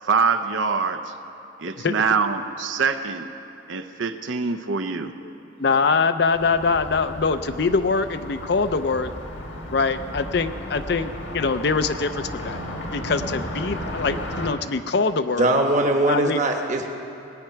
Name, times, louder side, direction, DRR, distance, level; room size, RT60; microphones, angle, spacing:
voice 1, 0.0-1.1 1.6-3.3 3.7-5.1, right 5 dB, 75° right, 8 dB, 0.7 m, -24 dB
voice 2, 5.6-9.1 9.7-12.6 12.9-15.5 16.1-16.4, left 4 dB, 55° left, 10 dB, 0.5 m, -23 dB
Car passing by, 6.3-14.5, equal, 75° left, 1.6 m, -34 dB
voice 3, 15.4-16.9, right 1 dB, 35° right, 3 dB, 1.1 m, -20 dB
19.5 x 9.0 x 5.7 m, 2.9 s
head